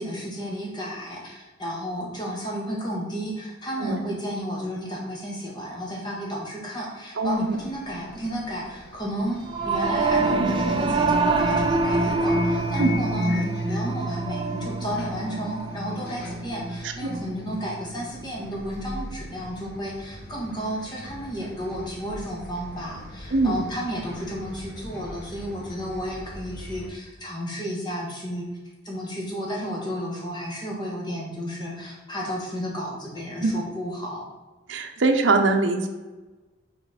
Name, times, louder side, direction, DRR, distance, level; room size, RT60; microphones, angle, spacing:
voice 1, 0.0-9.4 9.6-28.5 28.8-34.2, equal, 20° left, -3 dB, 1.4 m, -32 dB
Bus, 7.2-26.9, left 2 dB, 50° left, 1.0 m, -42 dB
voice 2, 7.2-7.6 12.8-13.0 23.3-23.6 33.4-33.5 34.7-35.9, right 3 dB, 70° right, 5 dB, 0.6 m, -22 dB
Singing / Musical instrument, 9.5-19.0, right 2 dB, 25° right, 0.4 m, -26 dB
5.5 x 4.2 x 4.2 m, 1.2 s
head